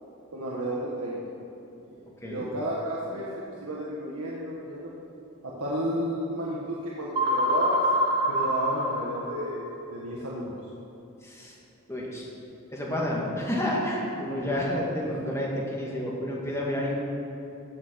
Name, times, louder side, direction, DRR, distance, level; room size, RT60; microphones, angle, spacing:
voice 1, 0.3-1.2 1.9-3.3 3.6-4.9 5.4-7.8 8.3-10.6 14.3-14.5, equal, 90° right, -6 dB, 1.6 m, -32 dB
sound 1, 7.2-9.7, equal, 20° right, 1.5 m, -25 dB
voice 2, 11.2-11.5 11.9-12.3 12.7-16.9, left 1 dB, 10° left, -3 dB, 2.0 m, -30 dB
16.0 x 6.3 x 6.4 m, 2.9 s
head